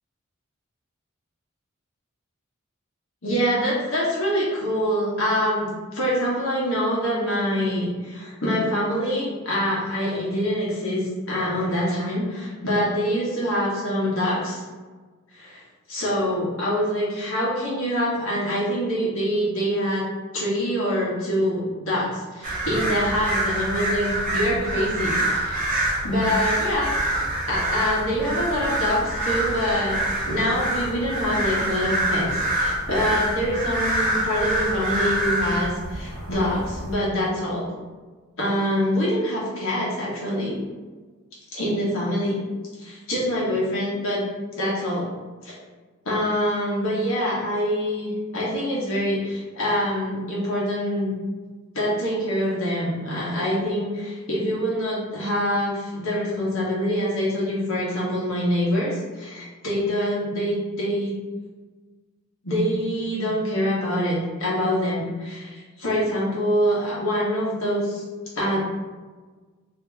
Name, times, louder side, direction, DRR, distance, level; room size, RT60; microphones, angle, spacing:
voice 1, 3.2-14.6 15.3-15.6 15.9-20.0 20.3-25.6 26.0-26.9 27.5-37.6 38.4-40.6 41.5-42.4 42.8-44.2 44.6-45.0 45.4-45.5 46.0-51.1 51.7-61.1 62.4-68.0 68.3-68.6, equal, 75° left, -6 dB, 1.3 m, -25 dB
sound 1, 22.4-36.9, right 1 dB, 40° right, 0.7 m, -26 dB
2.9 x 2.8 x 3.4 m, 1.4 s
head